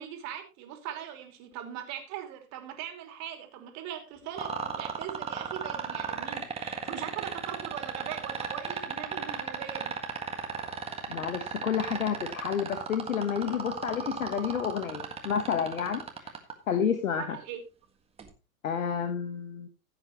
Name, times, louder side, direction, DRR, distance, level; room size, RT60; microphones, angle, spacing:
voice 1, 0.0-9.9 17.2-17.6, right 10 dB, 40° right, 5 dB, 3.0 m, -40 dB
sound 1, 4.4-16.5 18.2-18.3, right 6 dB, 15° right, 1.7 m, -34 dB
voice 2, 11.1-16.3 16.7-17.4 18.6-19.7, left 7 dB, 70° left, 9 dB, 1.4 m, -30 dB
15.5 x 8.1 x 3.1 m, 0.30 s
figure-of-eight pair, 100°, 43 cm